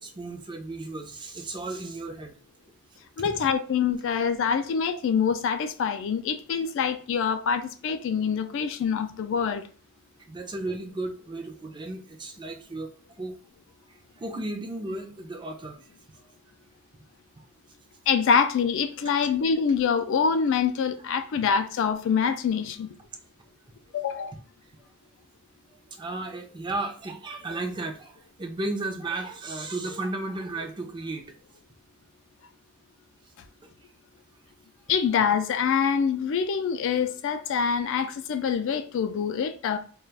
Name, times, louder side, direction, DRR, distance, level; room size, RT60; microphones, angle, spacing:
voice 1, 0.0-2.4 3.2-3.5 10.2-12.9 13.2-13.4 13.9-15.8 21.4-21.5 25.7-31.3 33.2-33.3 33.6-33.7, right 2 dB, 20° right, 0.4 m, -34 dB
voice 2, 3.2-9.7 18.1-22.9 23.9-24.3 34.9-39.8, left 6 dB, 65° left, 0.3 m, -25 dB
2.3 x 2.2 x 3.2 m
head